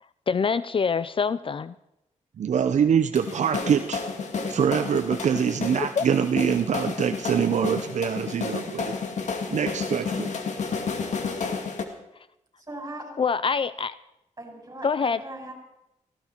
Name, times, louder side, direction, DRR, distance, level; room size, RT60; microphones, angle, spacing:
voice 1, 0.3-1.7 5.8-6.1 13.2-13.9 14.8-15.2, left 5 dB, 40° left, 16 dB, 0.5 m, -25 dB
voice 2, 2.4-4.0 4.5-9.0 9.5-10.3, right 7 dB, 65° right, 9 dB, 0.7 m, -24 dB
sound 1, 3.1-11.8, left 5 dB, 65° left, 2.2 m, -31 dB
voice 3, 12.7-13.2 14.4-15.5, right 1 dB, 25° right, 1 dB, 6.3 m, -39 dB
18.5 x 16.0 x 4.5 m, 0.85 s
cardioid pair, 85°, 13 cm